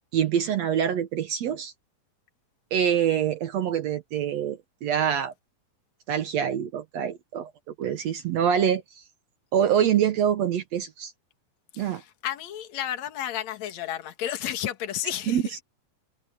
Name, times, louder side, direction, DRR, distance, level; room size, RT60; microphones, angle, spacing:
voice 1, 0.1-1.7 2.7-5.3 6.1-7.5 7.8-9.0 9.5-11.1 11.8-12.0 15.3-15.6, right 9 dB, 70° right, 1.7 m, -25 dB
voice 2, 11.7-15.4, left 11 dB, 55° left, 2.8 m, -32 dB
omnidirectional pair, 4.2 m